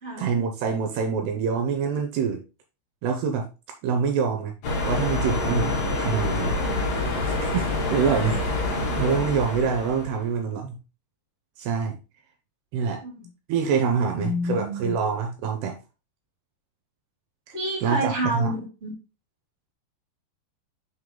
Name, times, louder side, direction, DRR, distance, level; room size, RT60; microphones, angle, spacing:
voice 1, 0.2-2.4 3.0-3.5 3.8-4.5 4.9-6.6 7.3-8.4 9.0-10.8 11.6-12.0 12.7-13.0 13.5-15.8 17.5-18.5, right 6 dB, 80° right, 2.6 m, -26 dB
sound 1, 4.6-10.2, left 2 dB, 55° left, 1.7 m, -26 dB
Bass guitar, 5.4-8.9, left 3 dB, 85° left, 0.5 m, -43 dB
voice 2, 8.1-8.4 12.9-13.3 14.0-14.9 17.5-18.9, equal, 25° right, 1.8 m, -29 dB
5.9 x 4.8 x 3.8 m
omnidirectional pair, 5.1 m